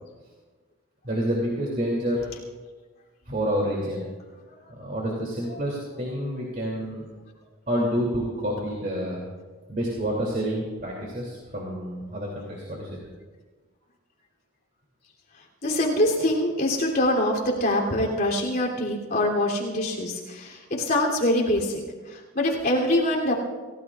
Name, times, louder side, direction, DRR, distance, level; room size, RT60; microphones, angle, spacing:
voice 1, 1.0-2.3 3.3-4.1 4.7-7.0 7.7-9.2 9.7-13.0, equal, 40° right, -3 dB, 2.9 m, -28 dB
voice 2, 15.6-21.8 22.1-23.3, left 1 dB, 45° left, -3 dB, 3.2 m, -24 dB
29.0 x 16.5 x 2.5 m, 1.3 s
head